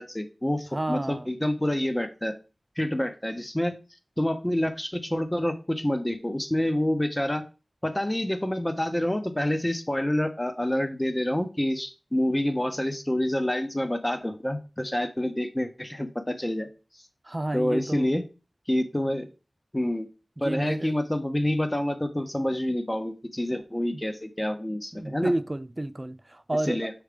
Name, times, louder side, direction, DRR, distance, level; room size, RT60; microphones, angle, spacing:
voice 1, 0.0-2.4 2.8-3.8 4.2-7.4 7.8-16.7 17.5-18.2 18.7-19.3 19.7-20.1 20.4-25.3 26.7-26.9, left 1 dB, 20° left, 1.0 m, -27 dB
voice 2, 0.7-1.3 17.2-18.2 20.4-21.0 23.9-24.0 24.9-26.9, right 1 dB, 35° right, 0.4 m, -30 dB
6.4 x 3.3 x 4.9 m
wide cardioid pair, 50°, 0 cm